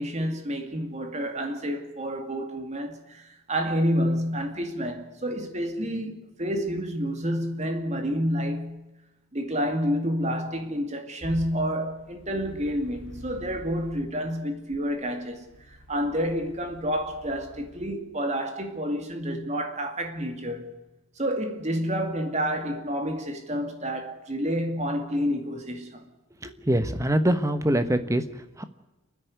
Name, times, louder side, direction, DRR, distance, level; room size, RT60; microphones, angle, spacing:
voice 1, 0.0-8.8 9.3-20.7 21.2-26.0, equal, 30° right, 2.3 m, -29 dB
sound 1, 11.2-14.1 14.7-17.9, equal, 50° left, 2.7 m, -47 dB
voice 2, 26.4-28.6, right 1 dB, 15° right, 1.1 m, -24 dB
28.5 x 10.5 x 9.6 m
head